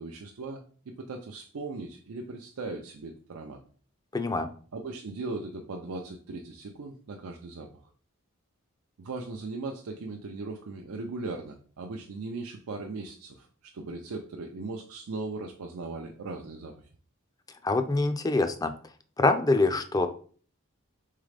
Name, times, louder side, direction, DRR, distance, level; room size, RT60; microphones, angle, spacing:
voice 1, 0.0-3.6 4.7-7.7 9.0-16.7, right 3 dB, 90° right, 2 dB, 0.5 m, -38 dB
voice 2, 4.1-4.5 17.6-18.7 19.2-20.1, left 2 dB, 15° left, 8 dB, 0.4 m, -25 dB
4.0 x 3.7 x 3.3 m, 0.44 s
head